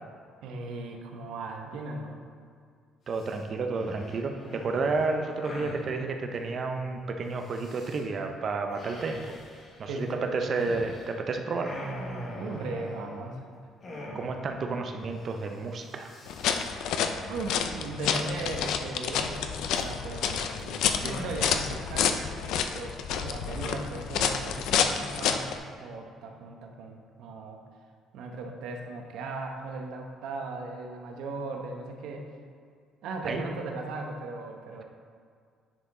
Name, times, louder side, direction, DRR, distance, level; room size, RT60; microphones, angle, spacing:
voice 1, 0.4-2.2 9.8-10.6 12.4-13.4 16.6-17.0 17.3-22.3 22.7-25.5 25.8-27.6 28.1-32.3 33.0-34.8, right 3 dB, 75° right, 2 dB, 0.9 m, -37 dB
sound 1, 3.1-3.4 3.7-5.9 7.4-8.0 8.7-11.2 11.4-13.4 13.8-14.6 14.9-15.0 15.2-15.5 15.8-16.7 18.1-19.1 19.8-21.5, equal, 35° left, 1.3 m, -43 dB
voice 2, 3.1-9.4 9.8-10.1 10.3-11.8 14.1-16.1 33.2-33.4, right 3 dB, 35° right, 4 dB, 0.6 m, -31 dB
sound 2, 16.3-25.6, left 7 dB, 70° left, 0.4 m, -29 dB
9.9 x 4.7 x 3.7 m, 2.2 s
cardioid pair, 165°, 0 cm